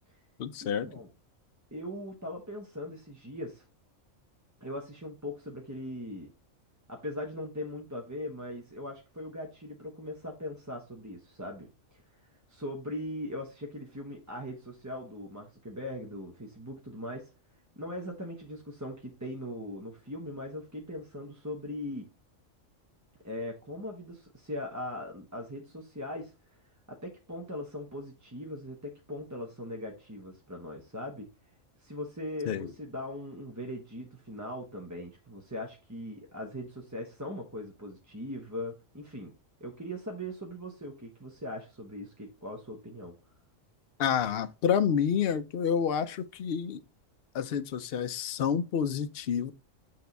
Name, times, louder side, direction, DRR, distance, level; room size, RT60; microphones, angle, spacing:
voice 1, 0.4-0.9 32.4-32.7 44.0-46.8 47.3-49.5, left 8 dB, 55° left, 0.7 m, -29 dB
voice 2, 1.7-3.6 4.6-6.3 6.9-12.0 12.5-17.3 17.8-22.1 23.2-26.3 26.9-31.3 31.8-39.3 39.6-43.1, left 1 dB, 15° right, 0.9 m, -40 dB
8.5 x 3.5 x 4.0 m
omnidirectional pair, 1.3 m